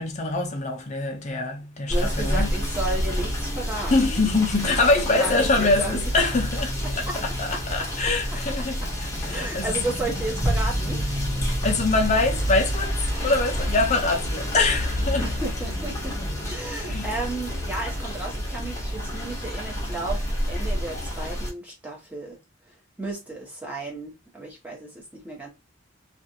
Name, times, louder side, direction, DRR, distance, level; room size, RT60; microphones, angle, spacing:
voice 1, 0.0-2.5 3.9-9.8 11.6-15.3 16.2-16.4 16.9-17.1, left 3 dB, 35° left, 0.5 m, -24 dB
Rain / Motor vehicle (road), 1.9-21.5, equal, 15° left, 0.8 m, -28 dB
voice 2, 1.9-4.3 4.9-6.1 6.8-7.2 7.5-7.6 8.3-8.4 8.8-8.9 9.3-11.0 15.2-16.1 16.5-22.4 23.0-25.5, right 2 dB, 5° right, 0.9 m, -33 dB
2.4 x 2.4 x 2.7 m
head